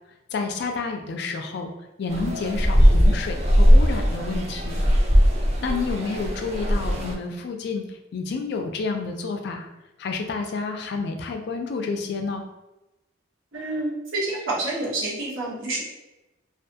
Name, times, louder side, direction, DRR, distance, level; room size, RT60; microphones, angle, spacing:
voice 1, 0.3-1.7 2.0-4.8 5.6-9.7 10.0-12.4, left 4 dB, 55° left, 4 dB, 0.3 m, -29 dB
sound 1, 2.1-7.1, equal, 35° right, 0.4 m, -19 dB
voice 2, 13.5-15.8, right 2 dB, 80° right, -5 dB, 0.9 m, -28 dB
2.3 x 2.2 x 2.7 m, 0.98 s
head